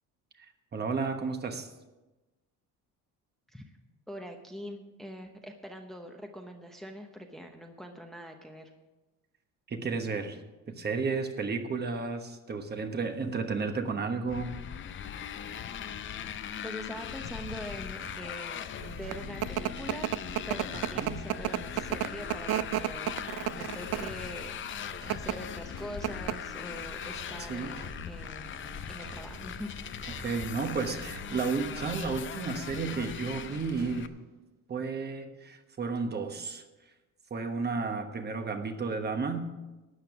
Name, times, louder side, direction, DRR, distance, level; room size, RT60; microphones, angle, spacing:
voice 1, 0.7-1.7 9.7-10.4 10.7-14.6 20.7-21.2 27.4-27.7 30.1-34.1 34.7-36.6 37.3-39.5, right 4 dB, 30° right, 6 dB, 1.2 m, -32 dB
voice 2, 4.1-8.7 16.2-20.2 20.5-24.5 25.1-28.5 28.9-29.9, equal, ahead, 4 dB, 0.8 m, -43 dB
Motorcycle, 14.3-34.1, left 9 dB, 35° left, 0.6 m, -40 dB
sound 1, 18.0-34.5, right 6 dB, 75° right, 1.3 m, -53 dB
sound 2, 18.8-34.0, right 13 dB, 50° right, 0.4 m, -35 dB
13.0 x 8.9 x 6.0 m, 1.1 s
cardioid pair, 135°, 33 cm